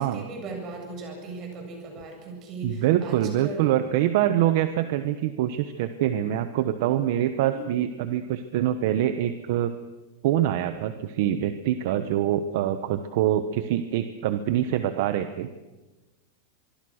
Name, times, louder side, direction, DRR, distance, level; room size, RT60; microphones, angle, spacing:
voice 1, 0.0-3.2 3.4-3.8 7.5-7.8, right 3 dB, 30° right, 2 dB, 7.5 m, -38 dB
voice 2, 2.6-9.7 10.2-15.5, right 11 dB, 50° right, 10 dB, 1.1 m, -25 dB
25.0 x 23.5 x 6.6 m, 1.1 s
supercardioid pair, 165°, 0 cm